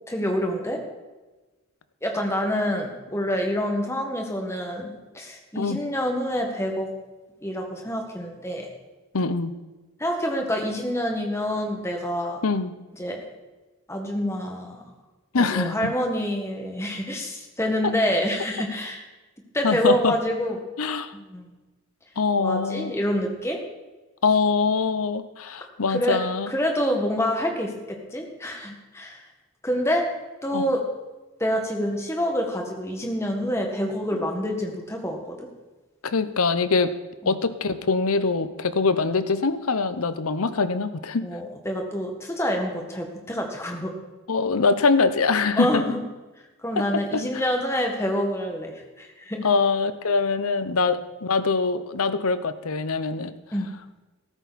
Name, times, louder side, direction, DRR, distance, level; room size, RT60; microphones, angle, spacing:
voice 1, 0.1-0.8 2.0-6.9 7.4-8.7 10.0-12.4 12.9-13.2 13.9-14.8 15.4-19.0 19.5-20.6 21.1-21.5 22.4-23.6 25.9-26.2 26.5-29.2 29.6-30.1 30.4-30.8 31.4-35.5 37.2-37.3 41.2-43.9 45.6-46.0 46.6-49.5 53.5-53.7, equal, 10° left, 2 dB, 1.7 m, -27 dB
voice 2, 9.1-9.5 12.4-12.7 15.3-15.9 19.6-20.1 20.8-21.1 22.2-22.9 24.2-26.5 30.5-30.7 36.0-36.9 37.3-41.3 44.3-45.8 46.8-47.2 49.4-53.3, left 4 dB, 85° left, 12 dB, 0.8 m, -23 dB
14.5 x 13.0 x 4.2 m, 1.2 s
head